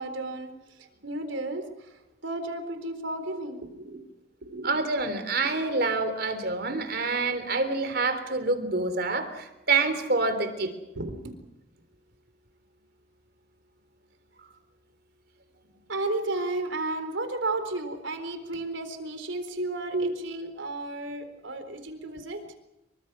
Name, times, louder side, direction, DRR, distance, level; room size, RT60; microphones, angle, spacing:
voice 1, 0.0-4.0 4.4-4.8 11.0-11.3 15.9-22.5, right 2 dB, 80° right, 8 dB, 4.0 m, -33 dB
voice 2, 4.6-10.7 19.9-20.1, right 3 dB, 55° right, 9 dB, 3.4 m, -27 dB
26.5 x 24.0 x 6.2 m, 0.93 s
head